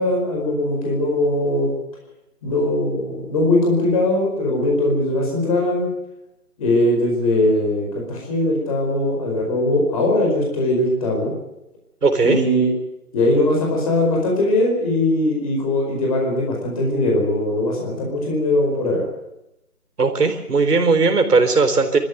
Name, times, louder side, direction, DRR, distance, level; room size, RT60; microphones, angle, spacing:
voice 1, 0.0-1.7 2.4-5.9 6.6-11.3 12.2-12.7 13.1-19.0, left 1 dB, 25° left, 0 dB, 4.8 m, -20 dB
voice 2, 12.0-12.4 20.0-22.0, right 4 dB, 85° right, 6 dB, 4.1 m, -17 dB
22.5 x 14.0 x 9.2 m, 0.88 s
hypercardioid pair, 170°, 45 cm